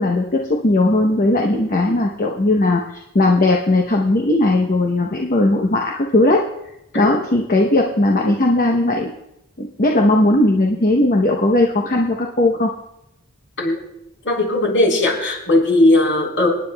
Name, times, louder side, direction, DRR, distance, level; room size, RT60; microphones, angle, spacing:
voice 1, 0.0-6.4 6.9-9.1 9.6-12.7, left 2 dB, 40° left, 1 dB, 0.8 m, -17 dB
voice 2, 14.3-16.5, left 2 dB, 60° left, -1 dB, 3.9 m, -17 dB
28.0 x 9.7 x 2.3 m, 0.85 s
head